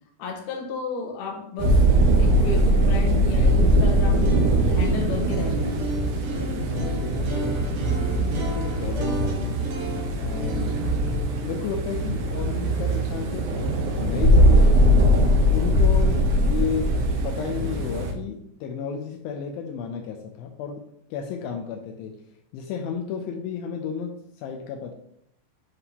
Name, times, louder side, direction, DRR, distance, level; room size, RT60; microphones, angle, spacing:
voice 1, 0.2-1.8 2.2-6.0, left 5 dB, 70° left, 2 dB, 2.1 m, -32 dB
sound 1, 1.6-18.1, equal, 80° right, 1.8 m, -21 dB
sound 2, 4.1-14.0, right 2 dB, 65° right, 1.7 m, -35 dB
voice 2, 6.7-9.7 10.2-10.8 11.4-13.6 13.9-15.1 15.5-20.9 21.1-22.2 22.5-24.9, left 6 dB, 85° left, 3 dB, 2.1 m, -33 dB
10.5 x 3.6 x 2.9 m, 0.71 s
omnidirectional pair, 4.8 m